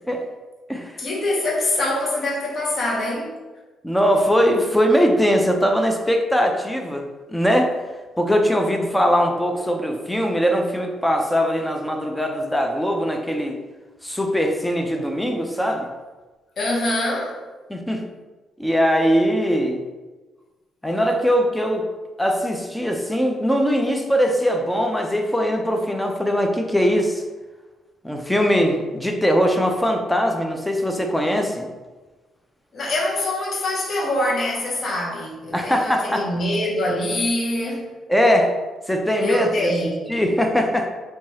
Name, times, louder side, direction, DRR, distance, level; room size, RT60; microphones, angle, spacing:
voice 1, 1.0-3.3 16.6-17.4 32.7-37.9 39.2-40.1, left 1 dB, 50° left, 0.6 m, -24 dB
voice 2, 3.8-7.7 8.2-13.5 14.0-15.9 17.7-18.1 18.6-19.8 20.8-21.9 22.2-27.2 28.0-31.7 35.5-36.3 38.1-38.5 38.9-39.7 40.1-40.9, equal, 5° left, 0.3 m, -21 dB
2.9 x 2.2 x 2.7 m
cardioid pair, 90°, 0 cm